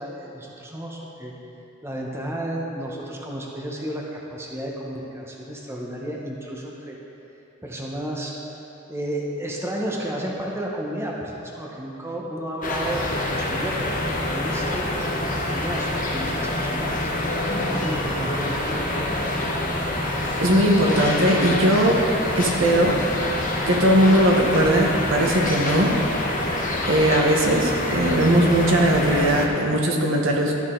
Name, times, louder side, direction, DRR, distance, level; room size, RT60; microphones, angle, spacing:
voice 1, 0.0-1.3 1.8-7.0 7.6-8.3 8.9-17.1 17.6-19.1 29.1-29.2, right 1 dB, 15° right, -2 dB, 0.9 m, -32 dB
sound 1, 12.6-29.5, left 1 dB, 40° left, 0.9 m, -26 dB
voice 2, 20.4-22.0 22.3-23.0 23.3-23.4 23.7-26.0 26.9-30.5, right 1 dB, 75° right, 0 dB, 1.1 m, -19 dB
13.0 x 6.3 x 3.8 m, 3.0 s
head